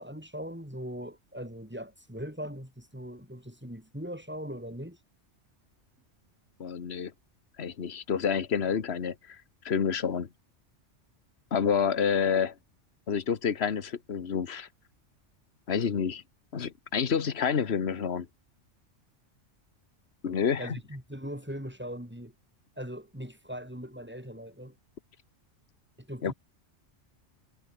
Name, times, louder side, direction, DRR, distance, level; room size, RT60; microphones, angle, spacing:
voice 1, 0.0-5.0 20.6-22.3 22.8-24.8 26.0-26.3, equal, 10° right, 7.1 m, -40 dB
voice 2, 6.6-7.1 7.6-9.4 9.6-10.3 11.5-12.5 13.1-14.7 15.7-16.2 16.5-18.3 20.2-20.8 26.2-26.3, left 7 dB, 60° left, 1.6 m, -28 dB
omnidirectional pair, 1.2 m